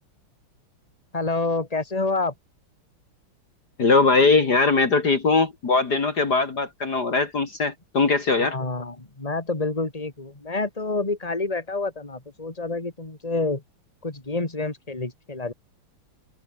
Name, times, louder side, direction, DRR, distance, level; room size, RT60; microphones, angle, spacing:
voice 1, 1.1-2.3 8.4-13.6 14.0-15.5, left 3 dB, 15° left, 3.4 m, -28 dB
voice 2, 3.8-8.6, left 4 dB, 50° left, 3.1 m, -20 dB
omnidirectional pair, 2.3 m